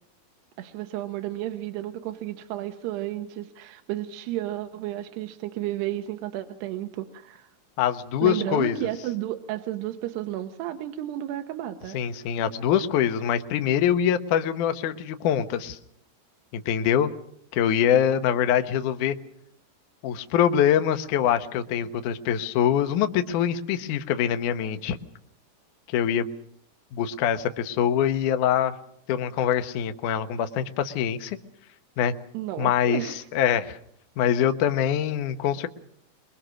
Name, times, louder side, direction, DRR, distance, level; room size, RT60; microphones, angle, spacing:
voice 1, 0.6-7.5 8.2-12.0 32.3-33.3, right 13 dB, 85° right, 6 dB, 3.1 m, -32 dB
voice 2, 7.8-8.8 11.9-15.8 16.5-17.1 17.5-19.2 20.0-25.0 25.9-26.3 26.9-28.7 29.1-31.4 32.0-32.1 32.6-33.8 34.2-35.7, left 9 dB, 65° left, 8 dB, 2.2 m, -24 dB
25.0 x 22.5 x 6.4 m, 0.68 s
omnidirectional pair, 4.7 m